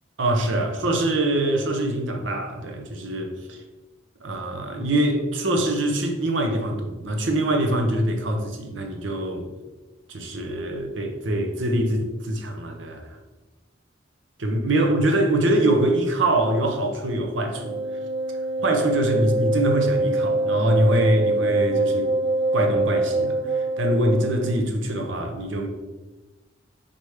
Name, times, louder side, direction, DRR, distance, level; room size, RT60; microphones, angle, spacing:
voice 1, 0.2-3.6 4.2-9.5 10.1-13.2 14.4-17.8 18.6-22.1 22.5-25.7, right 1 dB, 80° right, 4 dB, 0.8 m, -24 dB
Wind instrument woodwind instrument, 17.5-24.5, right 2 dB, 30° right, 0.5 m, -24 dB
6.4 x 4.1 x 3.5 m, 1.1 s
head